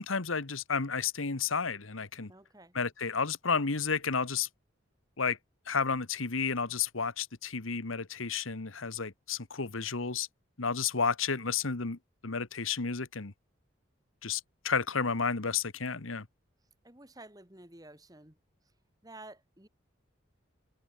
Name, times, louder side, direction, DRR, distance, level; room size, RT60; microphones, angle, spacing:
voice 1, 0.0-2.3 2.7-4.5 5.2-5.4 5.7-10.3 10.6-13.3 14.2-16.3, left 5 dB, 90° left, 1.5 m, -32 dB
voice 2, 2.3-2.7 16.8-18.4 19.0-19.7, right 2 dB, 20° right, 2.3 m, -51 dB
head